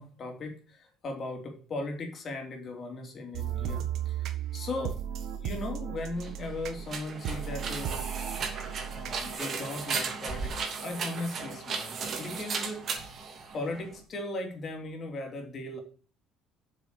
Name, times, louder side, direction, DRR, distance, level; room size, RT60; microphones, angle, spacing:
voice 1, 0.0-5.0 5.4-8.1 8.4-8.5 8.9-13.1 13.5-15.8, left 2 dB, 40° left, 3 dB, 3.2 m, -38 dB
sound 1, 3.3-9.3, right 9 dB, 65° right, 1.4 m, -35 dB
sound 2, 6.1-14.0, right 5 dB, 45° right, 2.7 m, -36 dB
7.4 x 6.3 x 6.9 m, 0.40 s
cardioid pair, 105°, 0 cm